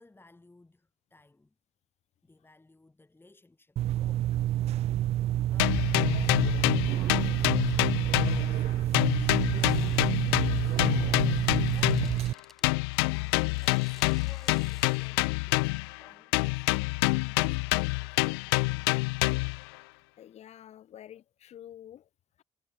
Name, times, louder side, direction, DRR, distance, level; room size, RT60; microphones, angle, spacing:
voice 1, 0.0-1.5 2.2-4.3 5.5-16.7 16.9-18.6, left 2 dB, 15° left, 5.6 m, -59 dB
sound 1, 3.8-12.3, right 13 dB, 55° right, 0.4 m, -28 dB
sound 2, 5.6-8.7 8.9-12.2 12.6-16.0 16.3-19.6, left 28 dB, 85° left, 0.5 m, -27 dB
sound 3, 9.6-15.1, equal, ahead, 5.4 m, -57 dB
voice 2, 20.2-22.1, left 11 dB, 60° left, 4.3 m, -48 dB
hypercardioid pair, 55°, 12 cm